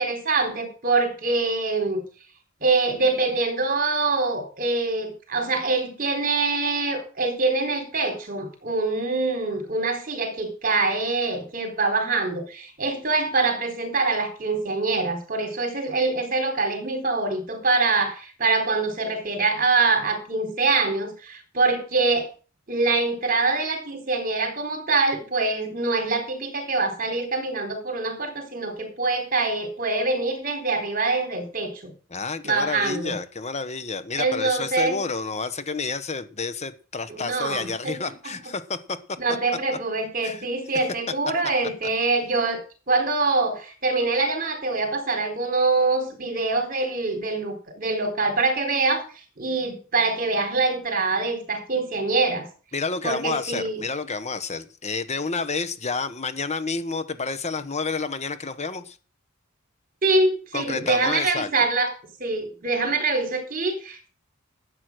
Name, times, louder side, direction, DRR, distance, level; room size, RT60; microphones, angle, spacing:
voice 1, 0.0-2.0 2.6-22.3 22.7-31.9 32.4-33.2 34.1-35.0 37.1-38.0 39.2-42.6 42.9-49.0 49.4-52.5 53.0-53.8 60.0-61.9 62.2-64.1, right 3 dB, 45° right, 4 dB, 4.1 m, -24 dB
voice 2, 32.1-39.0 40.2-40.5 52.7-59.0 60.5-61.5, left 4 dB, 30° left, 13 dB, 1.2 m, -30 dB
13.0 x 8.3 x 6.2 m, 0.38 s
head